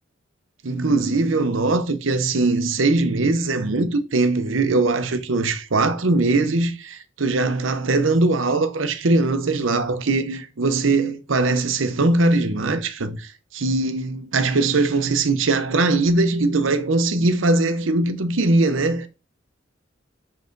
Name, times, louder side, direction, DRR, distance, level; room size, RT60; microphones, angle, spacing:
voice 1, 0.6-19.1, right 2 dB, 80° right, 0.8 m, -21 dB
5.4 x 5.0 x 4.0 m
head